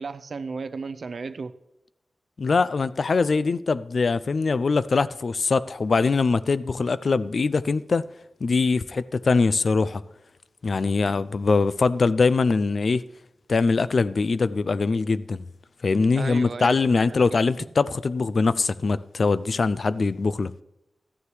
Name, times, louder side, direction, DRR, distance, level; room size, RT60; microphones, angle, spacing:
voice 1, 0.0-1.6 16.2-17.0 17.3-17.5, right 4 dB, 60° right, 0.5 m, -34 dB
voice 2, 2.4-8.0 8.4-10.0 10.6-13.0 13.5-15.4 15.8-20.6, left 4 dB, 55° left, 0.4 m, -22 dB
13.5 x 9.7 x 3.2 m
wide cardioid pair, 115°, 0 cm